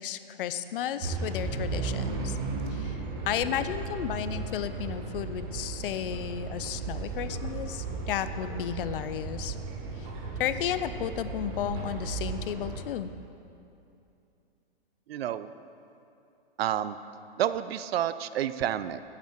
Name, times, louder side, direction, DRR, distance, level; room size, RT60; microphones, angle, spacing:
voice 1, 0.0-2.4 2.7-3.0 3.3-9.6 10.0-10.1 10.4-13.1, left 10 dB, 60° left, 12 dB, 0.5 m, -33 dB
sound 1, 1.0-12.8, right 4 dB, 40° right, 1.1 m, -35 dB
voice 2, 15.1-15.5 16.6-17.0 17.4-19.0, right 11 dB, 75° right, 14 dB, 0.5 m, -29 dB
8.1 x 7.4 x 4.4 m, 2.7 s
hypercardioid pair, 135°, 31 cm